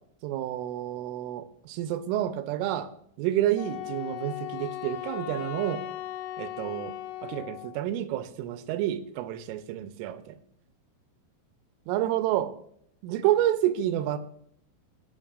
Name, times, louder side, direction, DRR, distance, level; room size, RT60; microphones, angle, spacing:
voice 1, 0.2-2.9 3.2-5.8 6.4-6.9 7.2-10.4 11.9-12.5 13.0-14.2, right 12 dB, 80° right, 3.2 m, -29 dB
Wind instrument woodwind instrument, 3.6-7.8, left 13 dB, 80° left, 3.1 m, -37 dB
21.5 x 9.2 x 2.5 m
omnidirectional pair, 5.9 m